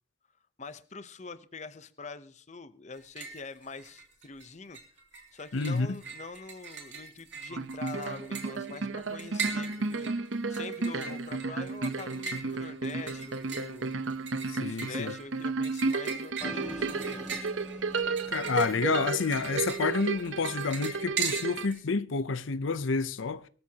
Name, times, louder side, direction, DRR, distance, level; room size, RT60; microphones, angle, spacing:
voice 1, 0.6-4.8 5.3-10.1 10.5-13.9 14.6-17.4, left 4 dB, 35° left, 0.8 m, -44 dB
sound 1, 2.9-3.5 3.8-4.5 4.7-21.8, right 5 dB, 65° right, 2.8 m, -40 dB
voice 2, 5.5-5.9 14.5-15.1 18.3-23.4, left 4 dB, 85° left, 0.7 m, -29 dB
sound 2, 7.5-21.7, right 4 dB, 90° right, 0.9 m, -33 dB
sound 3, 16.4-21.7, equal, 5° right, 3.1 m, -44 dB
23.5 x 13.5 x 2.9 m
head